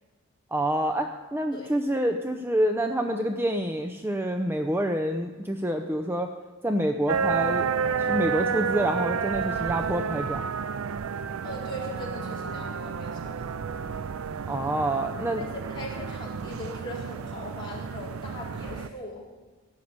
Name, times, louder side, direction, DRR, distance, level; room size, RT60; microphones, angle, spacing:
voice 1, 0.5-6.3 6.6-7.7 8.1-10.4 14.5-15.4, right 1 dB, 10° right, 4 dB, 0.6 m, -27 dB
sound 1, 7.1-18.9, right 6 dB, 85° right, 0.5 m, -30 dB
voice 2, 11.4-13.4 15.4-19.2, left 1 dB, 25° left, -6 dB, 4.6 m, -40 dB
16.0 x 6.5 x 9.6 m, 1.3 s
head